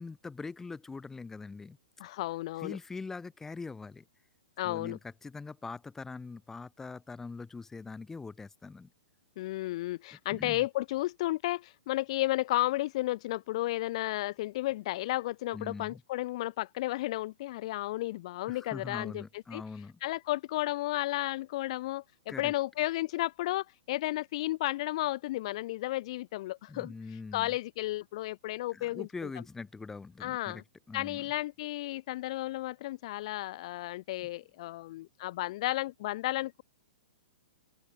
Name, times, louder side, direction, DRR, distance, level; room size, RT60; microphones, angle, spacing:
voice 1, 0.0-1.8 2.6-4.0 4.6-8.9 10.3-10.6 15.5-16.0 18.5-20.0 22.3-22.5 26.7-27.5 28.7-30.6 30.9-31.2, left 4 dB, 10° left, 1.3 m, -42 dB
voice 2, 2.0-2.8 4.6-5.0 9.4-19.6 20.0-29.1 30.2-30.6 30.9-36.6, left 17 dB, 45° left, 0.6 m, -33 dB
open air
figure-of-eight pair, 110°, 4 cm